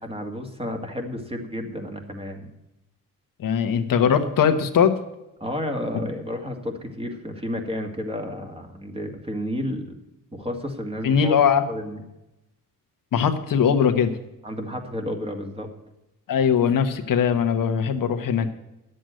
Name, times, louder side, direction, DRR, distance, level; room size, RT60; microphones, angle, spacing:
voice 1, 0.0-2.5 5.4-9.9 10.3-11.4 11.7-12.0 14.4-15.7, left 1 dB, 15° right, 4 dB, 2.1 m, -31 dB
voice 2, 3.4-4.9 11.0-11.6 13.1-14.1 16.3-18.5, left 7 dB, 70° left, 7 dB, 1.2 m, -20 dB
10.0 x 7.9 x 7.7 m, 0.92 s
cardioid pair, 85°, 34 cm